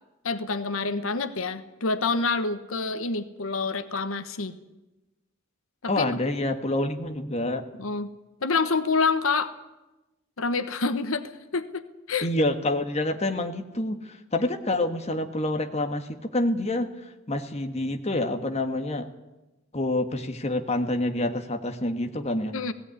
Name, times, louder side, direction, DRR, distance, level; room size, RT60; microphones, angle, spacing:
voice 1, 0.2-4.5 5.8-6.2 7.8-8.1 8.4-9.5 10.4-12.3 22.5-22.7, left 4 dB, 85° left, 11 dB, 1.2 m, -27 dB
voice 2, 5.9-7.6 12.2-19.1 19.7-22.5, left 1 dB, 30° left, 6 dB, 1.4 m, -27 dB
17.0 x 17.0 x 9.7 m, 1.0 s
head